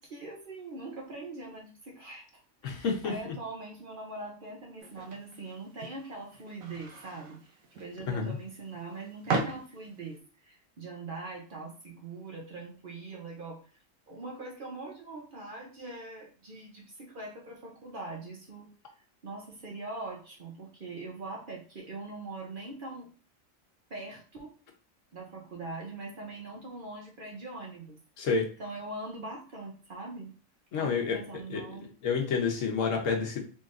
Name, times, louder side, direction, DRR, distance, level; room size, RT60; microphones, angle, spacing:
voice 1, 0.0-13.6 14.1-18.7 19.2-23.1 23.9-24.6 25.1-28.0 28.6-30.3 30.8-31.9, right 3 dB, 50° right, -1 dB, 0.7 m, -42 dB
voice 2, 2.6-3.3 8.1-8.4 28.2-28.4 30.7-33.4, left 5 dB, 70° left, 2 dB, 1.2 m, -30 dB
sound 1, 4.8-10.2, right 3 dB, 85° right, 1.2 m, -38 dB
4.1 x 3.3 x 2.5 m, 0.39 s
omnidirectional pair, 1.4 m